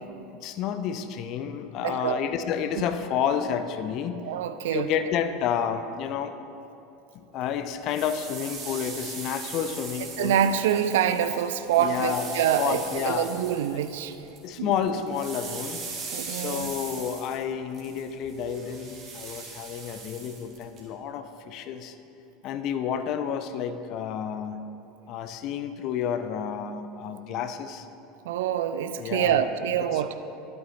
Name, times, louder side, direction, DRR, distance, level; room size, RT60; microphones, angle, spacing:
voice 1, 0.3-4.2 4.7-6.4 7.1-10.4 11.8-13.2 13.7-13.8 14.4-15.9 16.3-22.0 22.4-24.7 25.1-27.9 29.0-29.5 29.8-30.0, left 8 dB, 45° left, 10 dB, 0.5 m, -30 dB
voice 2, 1.8-2.2 4.3-4.9 10.2-14.1 14.6-14.7 16.1-16.7 28.2-30.1, right 9 dB, 60° right, 11 dB, 0.4 m, -26 dB
sound 1, 7.6-14.5 14.7-20.8, right 4 dB, 35° right, 2.1 m, -40 dB
12.0 x 7.9 x 3.0 m, 2.9 s
figure-of-eight pair, 75°, 0 cm